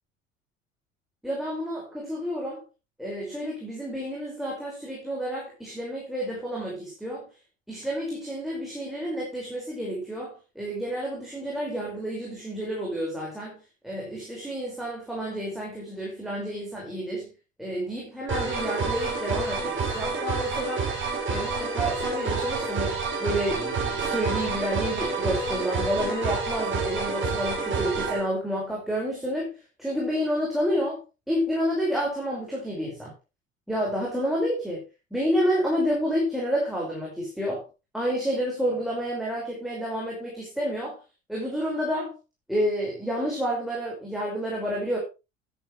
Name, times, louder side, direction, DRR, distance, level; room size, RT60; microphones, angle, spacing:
voice 1, 1.2-2.6 3.0-7.3 7.7-17.3 17.6-20.9 21.3-33.1 33.7-34.8 35.1-37.7 37.9-41.0 41.3-42.1 42.5-45.0, equal, ahead, -4 dB, 5.2 m, -29 dB
sound 1, 18.3-28.2, right 4 dB, 30° right, 5.9 m, -28 dB
12.0 x 10.5 x 3.2 m, 0.28 s
figure-of-eight pair, 65°, 39 cm